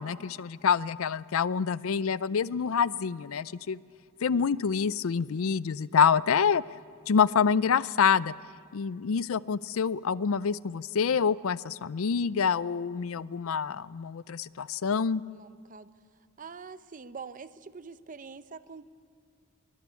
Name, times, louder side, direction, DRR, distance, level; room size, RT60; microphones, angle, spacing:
voice 1, 0.0-3.8 4.2-6.6 7.1-8.3 8.7-15.2, left 6 dB, 80° left, 19 dB, 0.5 m, -27 dB
voice 2, 15.3-15.9 16.4-18.9, right 5 dB, 40° right, 13 dB, 0.7 m, -45 dB
22.5 x 21.0 x 8.4 m, 2.3 s
head